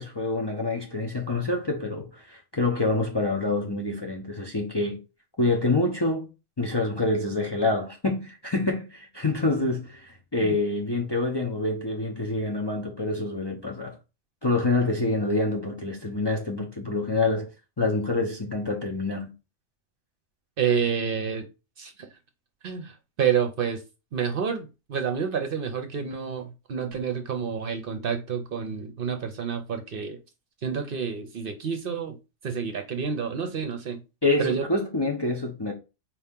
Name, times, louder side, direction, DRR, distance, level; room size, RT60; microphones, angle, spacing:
voice 1, 0.0-5.0 5.4-6.3 6.6-14.0 14.4-17.5 17.8-19.3 34.2-35.7, left 2 dB, 30° left, 0.6 m, -26 dB
voice 2, 20.6-21.4 21.8-22.1 22.6-23.8 24.1-30.2 30.6-32.2 32.4-34.0 34.4-34.6, right 7 dB, 55° right, 0.8 m, -29 dB
4.6 x 2.8 x 3.5 m
omnidirectional pair, 1.2 m